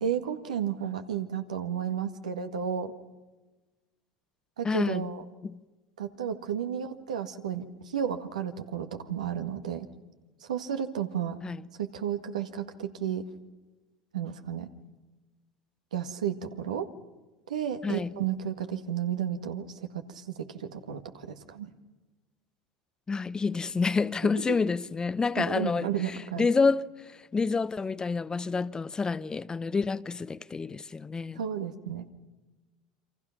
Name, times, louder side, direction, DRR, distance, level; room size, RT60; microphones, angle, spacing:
voice 1, 0.0-2.9 4.6-5.2 6.0-9.9 10.5-11.4 11.8-13.2 14.1-14.7 15.9-16.9 17.5-21.7 25.4-26.5 31.4-32.1, right 9 dB, 85° right, 1.8 m, -32 dB
voice 2, 4.6-5.1 5.4-5.6 11.4-11.6 17.8-18.1 23.1-31.4, left 4 dB, 20° left, 0.8 m, -28 dB
28.5 x 25.0 x 5.9 m
hypercardioid pair, 85°, 4 cm